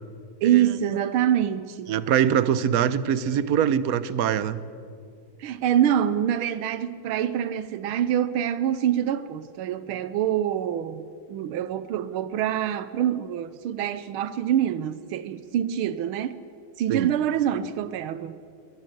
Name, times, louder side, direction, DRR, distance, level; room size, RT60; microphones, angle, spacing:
voice 1, 0.4-1.9 5.4-16.4 16.8-18.4, right 10 dB, 85° right, 1.7 m, -25 dB
voice 2, 1.9-4.6 16.9-17.1, right 9 dB, 55° right, 1.1 m, -23 dB
23.5 x 22.0 x 7.9 m
omnidirectional pair, 2.3 m